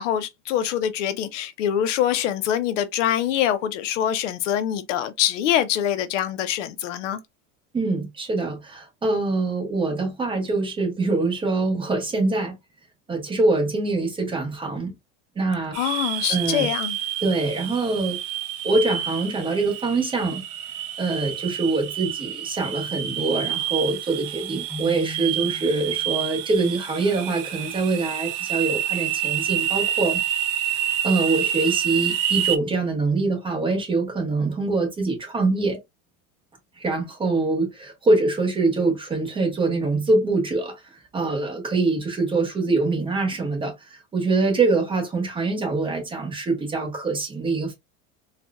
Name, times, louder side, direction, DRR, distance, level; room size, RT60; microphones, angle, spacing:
voice 1, 0.0-7.2 15.7-17.0, left 10 dB, 85° left, 0.7 m, -24 dB
voice 2, 7.7-12.6 13.1-14.9 15.4-16.7 17.2-18.2 18.6-20.4 21.0-30.2 30.6-35.8 36.8-40.7 41.1-47.7, right 3 dB, 15° right, 1.1 m, -24 dB
sound 1, 15.7-32.6, right 10 dB, 50° right, 0.6 m, -28 dB
Keyboard (musical), 24.7-26.6, equal, 15° left, 0.8 m, -39 dB
4.1 x 2.4 x 2.3 m
supercardioid pair, 160°, 36 cm